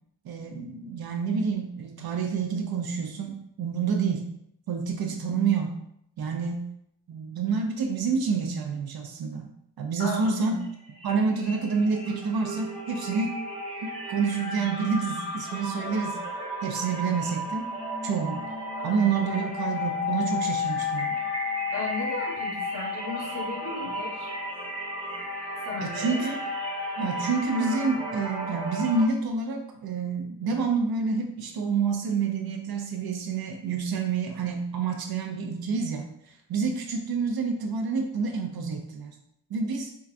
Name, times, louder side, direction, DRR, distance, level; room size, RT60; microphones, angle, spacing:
voice 1, 0.2-4.3 4.7-5.8 6.2-6.7 7.1-9.5 9.8-10.6 11.0-13.3 14.1-16.2 16.6-17.7 18.0-18.4 18.8-21.2 25.8-26.4 27.0-36.1 36.5-39.1 39.5-39.9, right 5 dB, 60° right, 3 dB, 0.5 m, -28 dB
voice 2, 10.0-10.7 21.7-24.3 25.6-26.2, left 3 dB, 45° left, -5 dB, 1.5 m, -35 dB
sound 1, 10.4-10.7 10.9-29.0, left 2 dB, 10° right, 0.9 m, -33 dB
4.6 x 2.3 x 2.4 m, 0.74 s
wide cardioid pair, 145°, 43 cm